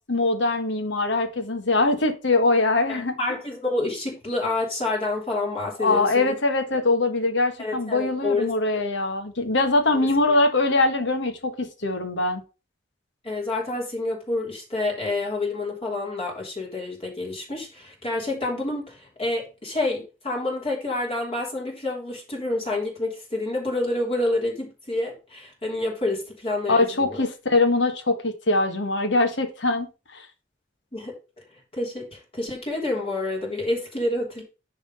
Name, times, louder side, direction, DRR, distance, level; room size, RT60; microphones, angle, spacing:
voice 1, 0.1-3.2 5.8-12.4 26.7-29.9 30.1-30.3, left 2 dB, 70° left, 1.4 m, -22 dB
voice 2, 2.9-6.4 7.6-8.5 9.9-10.4 13.2-27.2 30.9-31.1 31.7-34.4, left 2 dB, 30° left, 3.4 m, -28 dB
10.0 x 3.7 x 5.4 m
head